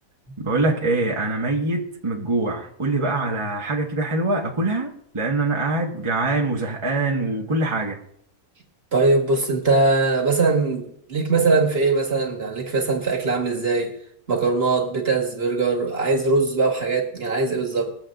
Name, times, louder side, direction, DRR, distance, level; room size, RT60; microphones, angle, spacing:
voice 1, 0.4-8.0, right 2 dB, 20° right, 1.4 m, -24 dB
voice 2, 8.9-13.9 14.3-17.9, right 3 dB, 40° right, 2.1 m, -21 dB
21.0 x 7.7 x 3.8 m
omnidirectional pair, 1.6 m